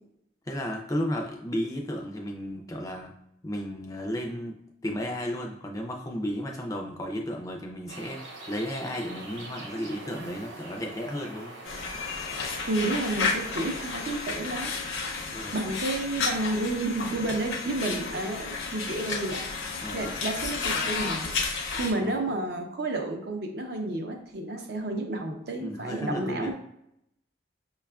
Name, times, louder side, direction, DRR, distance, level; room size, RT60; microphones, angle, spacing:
voice 1, 0.5-3.1 3.4-4.5 4.8-11.6 15.3-15.7 19.8-20.1 22.0-22.2 25.6-26.5, equal, 20° left, 2 dB, 0.3 m, -33 dB
sound 1, 7.9-14.1, right 2 dB, 85° right, 0.8 m, -43 dB
sound 2, 11.6-21.9, left 4 dB, 80° left, 0.5 m, -32 dB
voice 2, 12.7-14.7 15.5-19.4 19.9-21.4 21.8-26.5, right 2 dB, 55° right, 3 dB, 0.5 m, -31 dB
5.4 x 2.3 x 2.2 m, 0.78 s
head